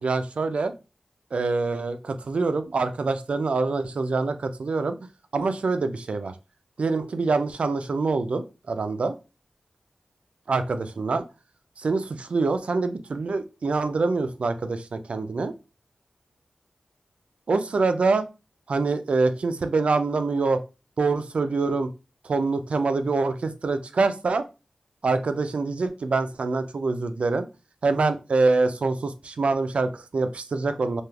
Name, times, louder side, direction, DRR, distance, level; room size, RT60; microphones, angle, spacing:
voice 1, 0.0-0.7 1.3-5.0 5.3-6.3 6.8-9.1 10.5-11.3 11.8-15.5 17.5-18.3 18.7-20.6 21.0-21.9 22.2-24.4 25.0-27.5 27.8-31.0, right 3 dB, 70° right, 9 dB, 0.3 m, -25 dB
3.2 x 2.3 x 2.3 m, 0.29 s
cardioid pair, 40°, 2 cm